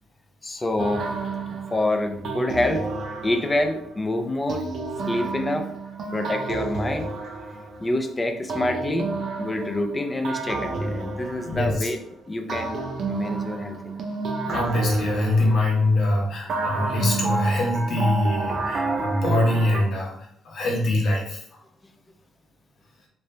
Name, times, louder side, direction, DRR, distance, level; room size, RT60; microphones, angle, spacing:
voice 1, 0.4-1.0 1.4-2.8 3.2-4.6 5.1-5.6 6.1-7.1 7.8-9.1 9.4-12.0 12.3-12.8 13.1-14.0, left 1 dB, 20° left, 5 dB, 0.5 m, -26 dB
sound 1, 0.8-3.9 4.5-8.0 8.5-12.0 12.5-16.0 16.5-19.8, right 3 dB, 65° right, 0.6 m, -30 dB
voice 2, 11.4-11.9 14.4-21.4, left 1 dB, 65° left, -1 dB, 1.1 m, -23 dB
3.2 x 2.7 x 3.3 m, 0.67 s
cardioid pair, 90°, 0 cm